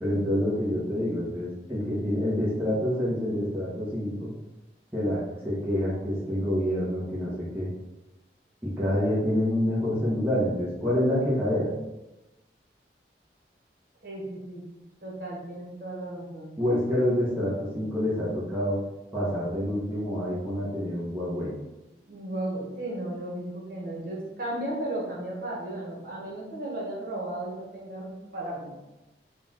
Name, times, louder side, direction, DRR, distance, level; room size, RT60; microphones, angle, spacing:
voice 1, 0.0-4.3 4.9-7.7 8.6-11.7 16.6-18.8 19.1-21.5, left 1 dB, 15° right, -8 dB, 1.0 m, -27 dB
voice 2, 14.0-14.6 15.0-16.5 22.1-28.7, right 1 dB, 55° right, -5 dB, 1.3 m, -35 dB
4.0 x 2.4 x 4.1 m, 0.97 s
head